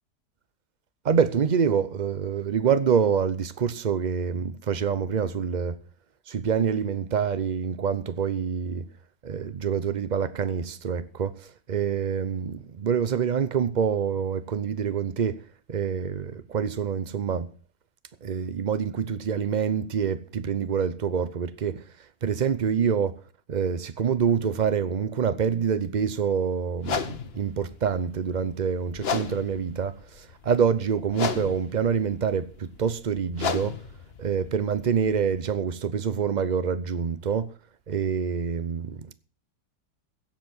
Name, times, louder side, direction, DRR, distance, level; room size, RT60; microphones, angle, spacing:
voice 1, 1.0-5.8 6.3-8.9 9.2-15.4 15.7-17.5 18.2-21.8 22.2-23.1 23.5-27.1 27.3-33.8 34.2-37.5 37.9-39.1, right 7 dB, 65° right, 0.4 m, -26 dB
sound 1, 26.8-35.5, left 5 dB, 40° left, 1.1 m, -35 dB
16.5 x 7.5 x 6.1 m
omnidirectional pair, 1.8 m